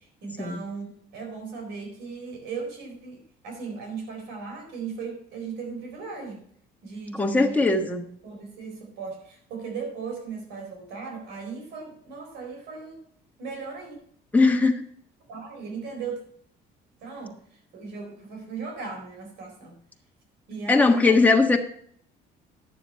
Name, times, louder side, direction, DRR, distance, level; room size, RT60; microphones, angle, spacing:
voice 1, 0.0-6.5 6.8-7.6 8.2-13.0 13.4-14.0 15.3-16.2 17.0-19.8 20.5-21.2, right 5 dB, 85° right, 2 dB, 4.1 m, -37 dB
voice 2, 7.2-8.1 14.3-14.8 20.7-21.6, left 3 dB, 10° left, 2 dB, 1.4 m, -19 dB
10.0 x 7.0 x 4.4 m, 0.63 s
cardioid pair, 110°, 17 cm